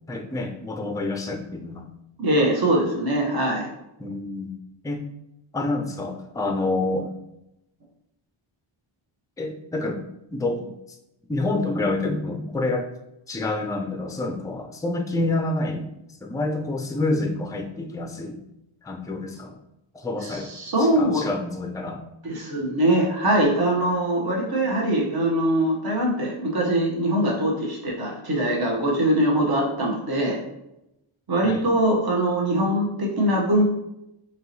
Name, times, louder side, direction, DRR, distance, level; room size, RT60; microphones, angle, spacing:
voice 1, 0.1-1.9 4.0-4.5 4.8-5.0 5.5-7.1 9.4-10.0 10.3-10.7 11.3-12.9 13.3-15.9 16.2-18.4 18.8-19.6 19.9-20.5 20.8-22.0 31.4-31.6, left 2 dB, 10° left, 5 dB, 0.3 m, -28 dB
voice 2, 2.2-3.7 20.2-21.2 22.2-30.4 31.3-33.6, right 1 dB, 50° right, -1 dB, 0.9 m, -22 dB
4.4 x 3.0 x 2.7 m, 0.87 s
wide cardioid pair, 115°, 50 cm